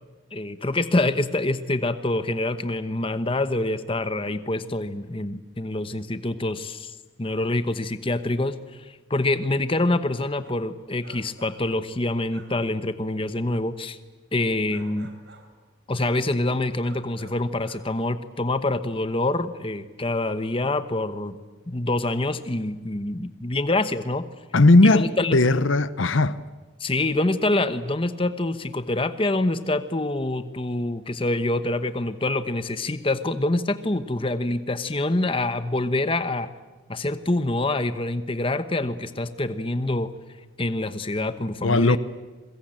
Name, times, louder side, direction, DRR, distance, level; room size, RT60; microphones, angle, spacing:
voice 1, 0.3-14.0 14.3-15.1 15.9-21.4 21.7-24.3 24.8-25.4 26.8-36.5 36.9-40.1 40.6-42.0, left 2 dB, 25° left, 1.0 m, -26 dB
sound 1, 10.4-10.7 11.0-11.7 12.3-12.7 14.7-15.6 16.1-16.4 16.8-17.9, right 2 dB, 60° right, 3.7 m, -50 dB
voice 2, 24.5-26.4 41.6-42.0, left 2 dB, 70° left, 0.8 m, -17 dB
27.0 x 22.0 x 8.9 m
head